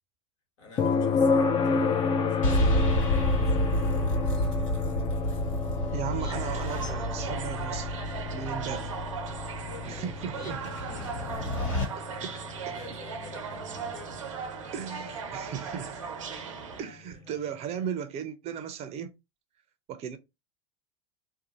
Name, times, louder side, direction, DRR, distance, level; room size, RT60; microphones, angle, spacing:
voice 1, 0.6-2.8 3.4-4.6 9.6-11.9 12.7-14.3, left 2 dB, 70° left, 1.4 m, -49 dB
sound 1, 0.8-14.6 16.9-17.0, left 5 dB, 30° left, 0.5 m, -30 dB
sound 2, 2.4-11.9, equal, 90° left, 1.3 m, -30 dB
voice 2, 5.9-8.0 8.3-8.9 9.9-10.6 12.2-12.3 12.7-12.8 14.7-16.0 16.8-19.1 19.9-20.2, right 8 dB, 40° right, 0.5 m, -36 dB
sound 3, 6.3-16.8, right 6 dB, 90° right, 0.6 m, -38 dB
2.6 x 2.2 x 2.9 m
hypercardioid pair, 100°, 16 cm